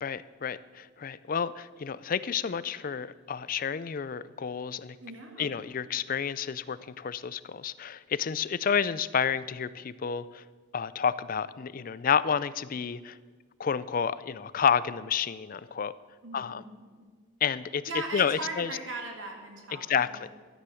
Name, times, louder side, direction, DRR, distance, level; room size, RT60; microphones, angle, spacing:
voice 1, 0.0-5.0 5.4-10.4 10.7-13.2 13.6-15.9 16.3-16.6 17.4-17.8 18.1-18.7 19.9-20.3, left 7 dB, 45° left, 17 dB, 0.4 m, -30 dB
voice 2, 5.0-5.6 16.2-17.1 17.9-20.3, right 2 dB, 75° right, 3 dB, 2.4 m, -39 dB
13.0 x 9.7 x 6.3 m, 1.5 s
head